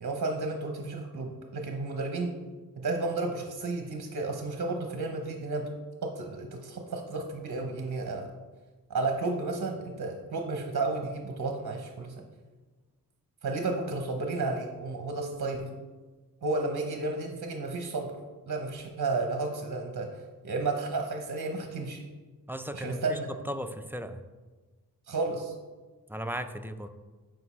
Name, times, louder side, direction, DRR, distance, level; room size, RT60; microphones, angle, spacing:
voice 1, 0.0-2.4 2.8-5.7 6.0-8.3 8.9-12.2 13.4-15.8 16.4-18.2 18.5-22.0 22.7-23.3 25.1-25.5, right 3 dB, 50° right, 4 dB, 0.8 m, -32 dB
voice 2, 22.5-23.2 23.4-24.2 26.1-26.9, equal, 5° right, 7 dB, 0.3 m, -36 dB
9.3 x 4.8 x 3.1 m, 1.3 s
wide cardioid pair, 100°, 38 cm